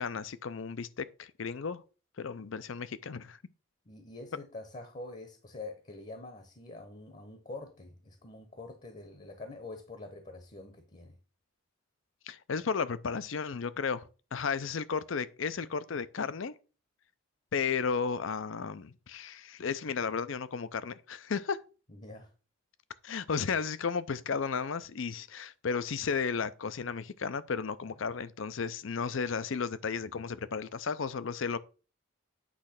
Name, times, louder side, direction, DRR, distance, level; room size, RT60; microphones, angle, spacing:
voice 1, 0.0-1.8 2.2-3.4 12.3-16.5 17.5-21.6 23.0-31.6, left 5 dB, 70° left, 0.5 m, -34 dB
voice 2, 3.9-11.2 21.9-22.3 27.8-27.9, left 2 dB, 35° left, 0.9 m, -46 dB
8.6 x 3.2 x 5.8 m
head